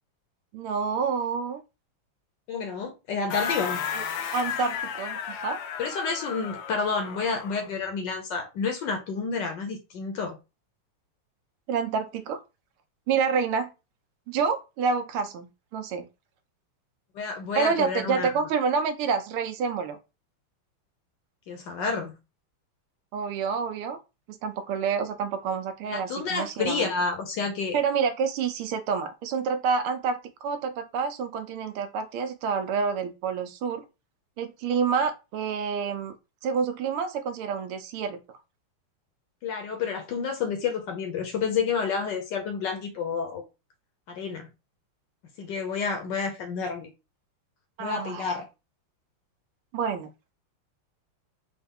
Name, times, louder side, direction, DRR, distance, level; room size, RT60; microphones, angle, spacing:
voice 1, 0.5-1.6 3.9-4.0 4.3-5.6 11.7-12.4 13.1-13.7 14.3-16.1 17.5-20.0 23.1-24.0 24.3-26.9 27.7-33.8 34.4-36.1 36.4-38.2 47.8-48.3 49.7-50.1, right 6 dB, 80° right, 1.6 m, -28 dB
voice 2, 2.5-3.8 5.8-10.4 17.1-18.3 21.5-22.1 25.8-27.8 39.4-43.4 44.1-44.5 45.4-46.9 47.8-48.5, left 5 dB, 65° left, 1.3 m, -29 dB
sound 1, 3.3-7.7, left 8 dB, 85° left, 1.6 m, -34 dB
4.5 x 2.4 x 3.4 m
omnidirectional pair, 2.4 m